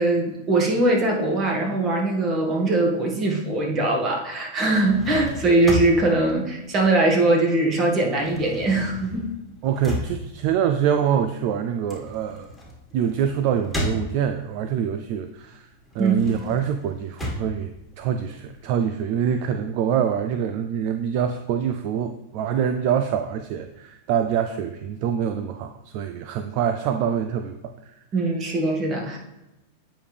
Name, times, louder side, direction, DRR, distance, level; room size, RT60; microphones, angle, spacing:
voice 1, 0.0-9.3 16.0-16.1 28.1-29.2, right 2 dB, 35° right, 0 dB, 1.8 m, -21 dB
sound 1, 4.6-7.5 7.8-14.6 15.0-18.6, left 1 dB, ahead, 1.9 m, -34 dB
voice 2, 9.6-12.5 12.9-15.7 15.9-27.9, right 8 dB, 55° right, 8 dB, 0.4 m, -25 dB
9.0 x 4.9 x 3.5 m, 0.98 s
hypercardioid pair, 115°, 0 cm